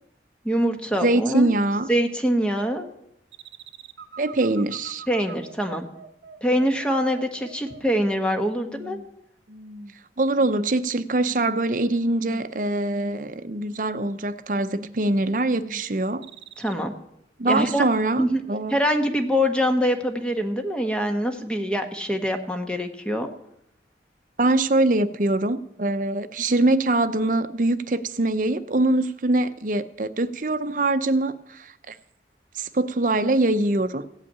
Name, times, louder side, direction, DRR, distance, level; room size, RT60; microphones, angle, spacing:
voice 1, 0.4-1.5 1.9-2.9 5.1-5.9 6.4-9.0 16.6-16.9 17.5-17.9 18.2-18.4 18.7-23.3, equal, 5° left, 6 dB, 1.1 m, -24 dB
voice 2, 1.0-1.9 4.2-5.0 10.2-16.2 17.4-18.7 24.4-32.0 32.6-34.0, right 2 dB, 45° right, 10 dB, 0.7 m, -23 dB
sound 1, 3.3-8.3 8.6-9.1 9.5-10.0 10.4-10.8 11.1-11.7 12.0-12.5 12.9-13.4 13.7-14.2 14.5-15.0 15.4-15.9 16.2-16.7, right 2 dB, 75° right, 0.8 m, -43 dB
16.0 x 5.8 x 8.7 m, 0.81 s
head